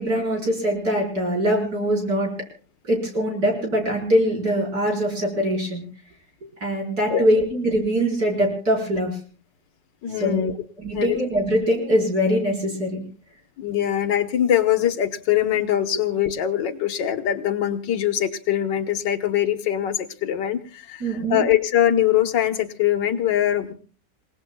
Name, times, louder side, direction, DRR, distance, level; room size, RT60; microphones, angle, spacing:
voice 1, 0.0-2.3 2.8-5.8 6.6-9.1 10.2-13.0 21.0-21.4, equal, 60° right, 1 dB, 5.1 m, -22 dB
voice 2, 10.0-10.5 10.9-11.2 13.6-23.7, left 11 dB, 90° left, 9 dB, 1.9 m, -22 dB
29.0 x 18.0 x 2.3 m, 0.41 s
omnidirectional pair, 1.9 m